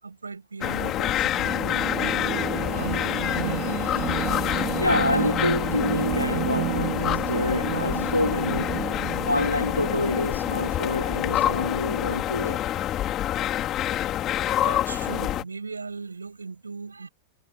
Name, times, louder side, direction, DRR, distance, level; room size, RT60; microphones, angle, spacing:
voice 1, 0.0-3.9 14.6-17.1, right 4 dB, 75° right, 6.3 m, -38 dB
sound 1, 0.6-15.4, left 12 dB, 30° left, 5.2 m, -27 dB
sound 2, 1.0-12.1, right 39 dB, 45° right, 6.9 m, -32 dB
voice 2, 4.8-12.7, left 2 dB, 85° left, 4.5 m, -27 dB
figure-of-eight pair, 90°, 0 cm